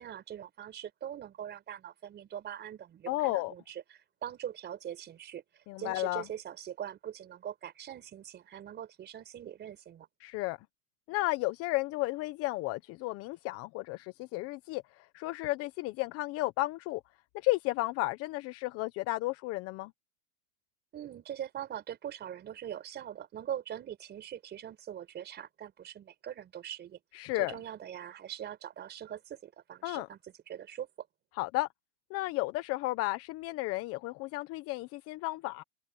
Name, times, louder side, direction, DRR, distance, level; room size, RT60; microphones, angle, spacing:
voice 1, 0.0-10.1 20.9-27.0 27.3-31.1, right 10 dB, 25° right, 4.8 m, -42 dB
voice 2, 3.1-3.5 5.7-6.2 10.2-10.6 11.1-17.0 17.4-19.9 27.1-27.5 29.8-30.1 31.4-31.7 32.1-35.6, left 20 dB, 30° left, 1.1 m, -33 dB
hypercardioid pair, 140°, 45 cm